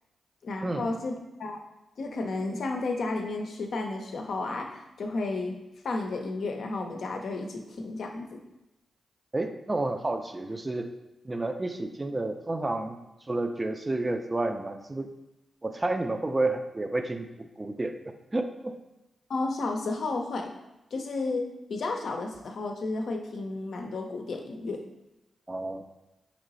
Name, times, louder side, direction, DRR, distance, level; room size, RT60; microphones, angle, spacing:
voice 1, 0.4-1.6 2.0-5.6 5.8-8.4 19.3-20.5 20.9-24.8, left 3 dB, 70° left, 3 dB, 0.5 m, -32 dB
voice 2, 9.3-10.9 11.2-13.0 13.3-15.1 15.6-18.8 25.5-25.8, right 2 dB, 30° right, 7 dB, 0.4 m, -30 dB
3.2 x 3.0 x 3.9 m, 0.93 s
supercardioid pair, 40°, 0 cm